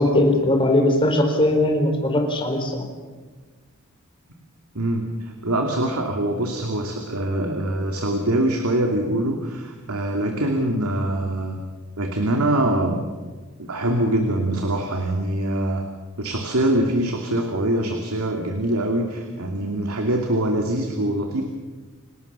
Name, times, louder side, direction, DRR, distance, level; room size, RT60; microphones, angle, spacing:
voice 1, 0.0-2.8, left 1 dB, 25° left, 4 dB, 4.3 m, -19 dB
voice 2, 4.7-11.6 12.0-13.0 13.6-15.8 16.2-21.4, right 1 dB, 90° right, 3 dB, 2.6 m, -23 dB
29.0 x 18.5 x 6.9 m, 1.3 s
head